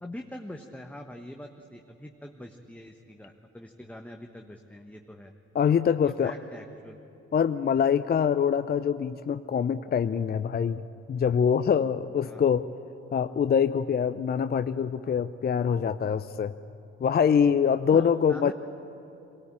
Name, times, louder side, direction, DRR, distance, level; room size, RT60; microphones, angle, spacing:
voice 1, 0.0-5.3 6.0-7.0 12.2-12.4 17.9-18.5, left 1 dB, 5° left, 3 dB, 1.2 m, -43 dB
voice 2, 5.5-6.3 7.3-10.8 11.1-12.7 13.1-16.5 17.0-18.5, left 7 dB, 30° left, 12 dB, 0.6 m, -24 dB
22.5 x 17.0 x 8.8 m, 2.7 s
hypercardioid pair, 45°, 35 cm